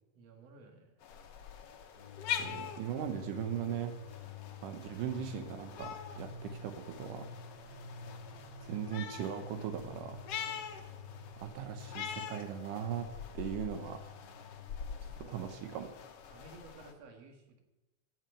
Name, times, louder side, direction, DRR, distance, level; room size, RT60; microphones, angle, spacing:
voice 1, 0.1-1.0 14.9-15.4 16.3-17.6, right 3 dB, 55° right, 2 dB, 2.9 m, -55 dB
sound 1, 1.0-16.9, left 8 dB, 65° left, 1.9 m, -44 dB
sound 2, 1.9-14.7, left 5 dB, 45° left, 1.9 m, -50 dB
voice 2, 2.4-4.0 4.6-7.3 8.6-10.2 11.4-13.1 13.3-14.0 15.3-15.9, right 9 dB, 85° right, 6 dB, 2.5 m, -38 dB
14.0 x 6.2 x 9.0 m, 1.0 s
omnidirectional pair, 3.6 m